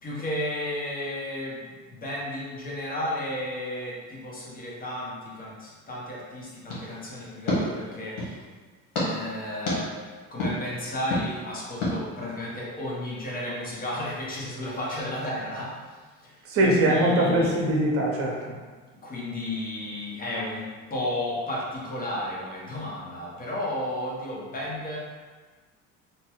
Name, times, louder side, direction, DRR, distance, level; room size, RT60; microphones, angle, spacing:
voice 1, 0.0-8.4 9.1-17.5 19.0-25.0, left 1 dB, 30° left, -5 dB, 0.9 m, -33 dB
sound 1, 6.7-8.4 8.9-9.1 9.7-9.8 10.4-10.5 11.1-11.2 11.8-11.9, left 2 dB, 80° left, 1.1 m, -29 dB
voice 2, 16.5-18.3, right 1 dB, 45° right, -2 dB, 0.8 m, -22 dB
3.0 x 2.2 x 3.0 m, 1.4 s
cardioid pair, 115°, 31 cm